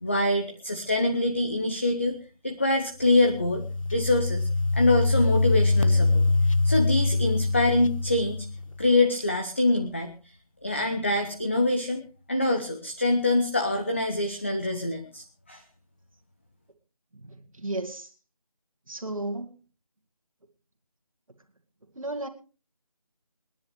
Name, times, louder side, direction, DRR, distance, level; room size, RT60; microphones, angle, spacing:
voice 1, 0.0-2.1 2.4-3.6 3.9-6.2 6.6-8.5 8.8-10.1 10.6-12.0 12.3-15.6, left 2 dB, 20° left, 5 dB, 0.7 m, -25 dB
sound 1, 3.2-8.8, left 3 dB, 55° left, 0.8 m, -24 dB
voice 2, 17.1-18.1 18.9-19.6 21.9-22.3, right 2 dB, 60° right, 5 dB, 2.0 m, -34 dB
28.5 x 10.0 x 3.2 m, 0.36 s
figure-of-eight pair, 165°, 20 cm